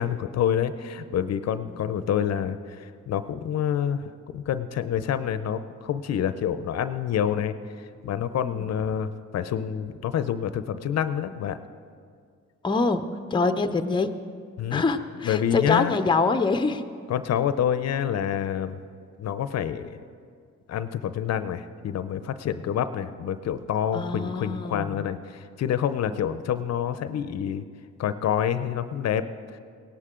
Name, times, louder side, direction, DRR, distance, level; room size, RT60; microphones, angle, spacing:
voice 1, 0.0-11.6 14.6-14.9 15.2-15.9 17.1-18.8 19.2-20.0 20.7-27.6 28.0-29.2 29.5-29.6, left 9 dB, 60° left, 12 dB, 0.6 m, -27 dB
voice 2, 12.6-13.1 13.3-14.1 14.7-16.8 22.5-22.6 23.9-25.0 26.1-26.2, left 4 dB, 15° left, 9 dB, 0.6 m, -25 dB
18.0 x 11.5 x 3.7 m, 2.1 s
cardioid pair, 90°, 30 cm